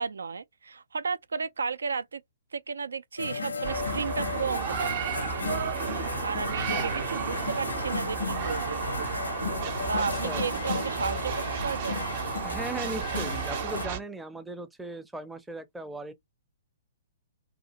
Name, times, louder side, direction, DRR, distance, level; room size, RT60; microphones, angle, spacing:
voice 1, 0.0-2.2 2.5-5.4 6.2-8.8 9.9-12.1, right 5 dB, 80° right, 0.3 m, -33 dB
sound 1, 3.2-13.9, left 4 dB, 85° left, 0.7 m, -34 dB
sound 2, 3.6-14.0, right 7 dB, 50° right, 0.6 m, -33 dB
voice 2, 9.9-10.5 12.4-16.1, right 2 dB, 5° right, 0.5 m, -38 dB
2.6 x 2.4 x 2.9 m
hypercardioid pair, 125°, 0 cm